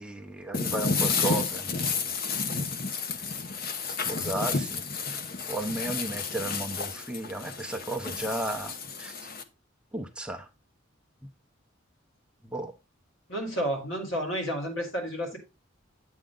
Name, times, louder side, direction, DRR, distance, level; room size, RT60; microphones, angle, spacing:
voice 1, 0.0-2.2 3.9-5.2 5.5-9.3 9.9-10.5 12.4-12.7, right 2 dB, 5° right, 0.7 m, -34 dB
sound 1, 0.5-9.4, left 4 dB, 50° left, 0.9 m, -31 dB
voice 2, 13.3-15.4, equal, 70° left, 3.7 m, -31 dB
8.8 x 7.6 x 3.8 m
head